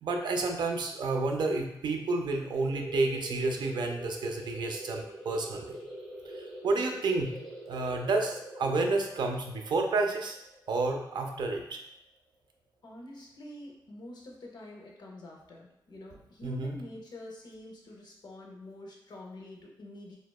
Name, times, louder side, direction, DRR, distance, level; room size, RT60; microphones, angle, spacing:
voice 1, 0.0-5.8 6.3-7.3 7.7-10.4 10.7-11.8 16.4-16.8, right 3 dB, 65° right, 3 dB, 0.3 m, -30 dB
sound 1, 2.6-11.9, right 1 dB, ahead, 0.5 m, -45 dB
voice 2, 12.8-20.2, left 1 dB, 60° left, -1 dB, 0.5 m, -46 dB
2.8 x 2.1 x 2.2 m, 0.83 s
wide cardioid pair, 145°, 8 cm